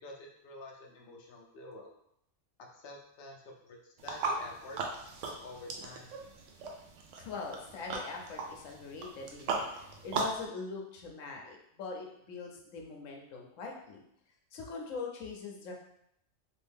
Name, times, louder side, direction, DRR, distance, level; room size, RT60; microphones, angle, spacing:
voice 1, 0.0-1.9 2.6-4.8 5.4-6.1, left 1 dB, 65° left, 0 dB, 0.7 m, -48 dB
sound 1, 4.0-10.4, right 3 dB, 75° right, 0.9 m, -38 dB
voice 2, 7.2-14.0 14.5-15.7, left 4 dB, 85° left, 1 dB, 1.0 m, -42 dB
2.8 x 2.6 x 3.5 m, 0.76 s
omnidirectional pair, 1.3 m